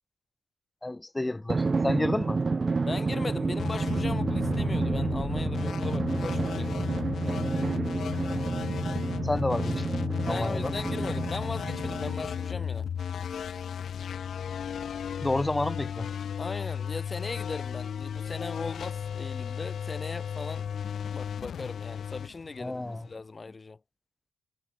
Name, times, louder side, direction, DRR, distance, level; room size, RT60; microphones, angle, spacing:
voice 1, 0.8-2.4 9.2-10.7 15.2-16.1 22.6-23.1, left 2 dB, 15° left, 1.0 m, -30 dB
Drum, 1.5-12.5, right 4 dB, 35° right, 1.4 m, -30 dB
voice 2, 2.8-6.9 10.3-12.9 16.4-20.7 21.1-23.8, left 3 dB, 30° left, 1.6 m, -38 dB
sound 1, 3.6-23.1, left 8 dB, 65° left, 1.2 m, -34 dB
cardioid pair, 85°, 0 cm